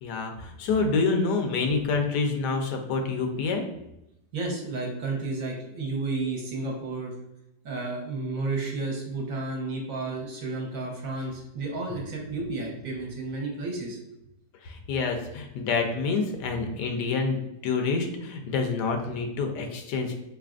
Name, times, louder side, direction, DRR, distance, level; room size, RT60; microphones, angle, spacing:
voice 1, 0.0-3.6 14.6-17.4 17.6-20.2, left 4 dB, 85° left, 4 dB, 1.2 m, -27 dB
voice 2, 4.3-7.1 7.6-14.0, right 3 dB, 65° right, -1 dB, 1.1 m, -32 dB
3.9 x 3.3 x 2.4 m, 0.85 s
omnidirectional pair, 1.8 m